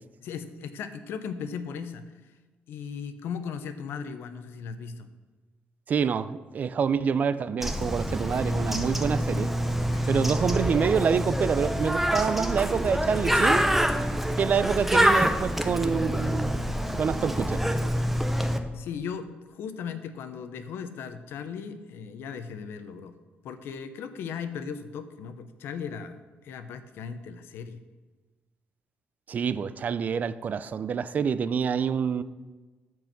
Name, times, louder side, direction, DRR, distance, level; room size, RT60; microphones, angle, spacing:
voice 1, 0.2-2.3 2.7-5.1 9.9-10.2 18.7-23.1 23.4-26.2 26.4-27.8, left 6 dB, 80° left, 0.8 m, -37 dB
voice 2, 5.9-9.5 10.1-13.6 14.4-16.5 17.0-17.6 29.3-32.2, right 6 dB, 45° right, 0.4 m, -27 dB
Bird, 7.6-18.6, equal, 5° right, 0.8 m, -26 dB
13.5 x 4.7 x 6.0 m
cardioid pair, 110°, 4 cm